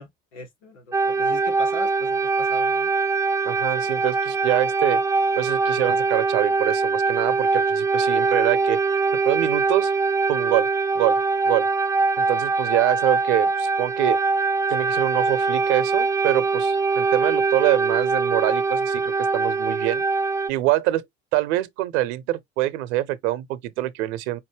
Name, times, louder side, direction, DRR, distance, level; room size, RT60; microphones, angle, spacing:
voice 1, 0.0-2.9, left 1 dB, 75° left, 3.2 m, -39 dB
sound 1, 0.9-20.5, right 4 dB, 10° right, 0.4 m, -22 dB
voice 2, 3.4-5.0 5.4-9.9 10.3-10.7 10.9-11.2 11.4-11.7 12.2-14.2 14.7-20.0 20.5-21.0 21.3-24.4, right 15 dB, 65° right, 0.8 m, -25 dB
5.3 x 2.7 x 3.1 m
figure-of-eight pair, 65°, 36 cm